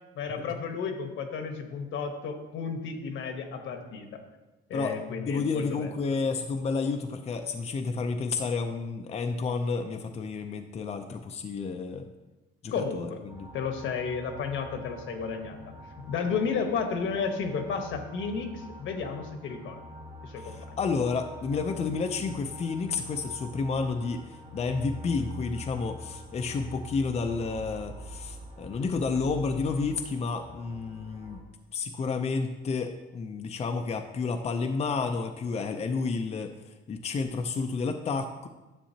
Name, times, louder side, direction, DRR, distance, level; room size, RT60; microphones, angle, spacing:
voice 1, 0.1-4.1 4.7-5.9 12.7-13.2 13.5-15.7 16.1-19.8 20.2-20.6, left 5 dB, 70° left, 5 dB, 1.1 m, -32 dB
voice 2, 4.7-12.1 12.6-13.5 20.4-31.4 31.7-36.5 36.9-38.5, left 4 dB, 30° left, 5 dB, 0.5 m, -31 dB
sound 1, 13.3-31.4, left 1 dB, 25° right, 1.2 m, -45 dB
10.0 x 6.9 x 2.8 m, 1.1 s
cardioid pair, 120°, 21 cm